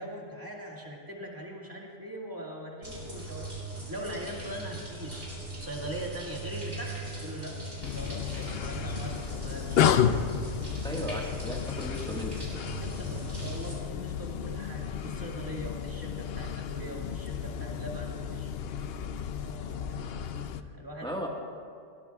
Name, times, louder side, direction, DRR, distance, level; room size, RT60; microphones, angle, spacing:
voice 1, 0.0-3.5 3.9-5.3 5.6-7.6 7.9-9.9 12.8-18.8 19.4-21.2, equal, 15° right, -3 dB, 2.0 m, -41 dB
sound 1, 2.8-13.7, right 2 dB, 50° right, 4.8 m, -40 dB
sound 2, 7.8-20.6, left 8 dB, 65° left, 0.7 m, -32 dB
voice 2, 10.8-12.4 21.0-21.3, equal, 5° left, -1 dB, 1.4 m, -36 dB
21.0 x 17.0 x 2.3 m, 2.2 s
omnidirectional pair, 1.2 m